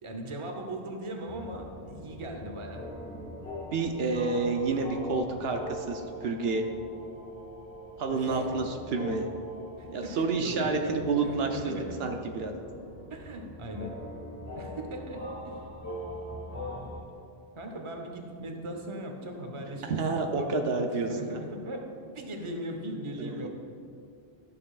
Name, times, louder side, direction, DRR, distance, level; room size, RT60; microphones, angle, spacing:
voice 1, 0.0-2.8 8.1-8.6 9.8-10.9 11.2-12.0 13.1-14.0 14.5-15.6 16.5-16.9 17.6-20.0 20.3-20.6 20.9-23.5, right 1 dB, 30° right, 3 dB, 0.8 m, -39 dB
sound 1, 1.3-17.0, equal, 60° left, 2.0 m, -42 dB
voice 2, 3.7-6.6 8.0-9.3 9.9-11.7 12.0-12.5 19.8-21.4 23.2-23.5, right 3 dB, 75° right, 4 dB, 0.8 m, -29 dB
12.5 x 6.7 x 2.4 m, 2.5 s
omnidirectional pair, 1.0 m